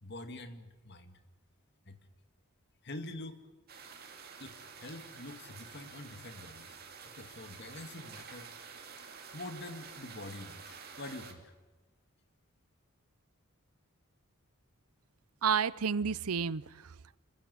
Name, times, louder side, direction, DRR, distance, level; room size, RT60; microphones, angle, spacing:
voice 1, 0.0-1.2 1.8-2.0 2.8-3.5 4.4-6.8 7.0-8.5 9.0-11.5, left 2 dB, 50° left, 8 dB, 2.1 m, -46 dB
sound 1, 3.7-11.3, right 6 dB, 45° right, 2.8 m, -50 dB
voice 2, 15.4-17.2, right 6 dB, 90° right, 20 dB, 0.7 m, -31 dB
27.0 x 15.5 x 9.6 m, 1.2 s
head